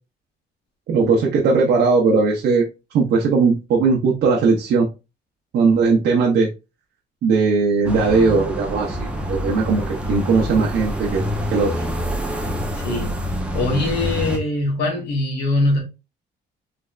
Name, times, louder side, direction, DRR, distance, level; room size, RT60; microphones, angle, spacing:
voice 1, 0.9-2.7 2.9-4.9 5.5-6.5 7.2-9.8 10.1-11.2 11.5-11.8, right 4 dB, 70° right, 0.7 m, -18 dB
sound 1, 7.8-14.4, equal, 5° right, 0.6 m, -26 dB
voice 2, 12.7-13.1 13.5-15.8, left 2 dB, 75° left, 1.6 m, -22 dB
3.3 x 3.1 x 2.3 m
cardioid pair, 160°, 18 cm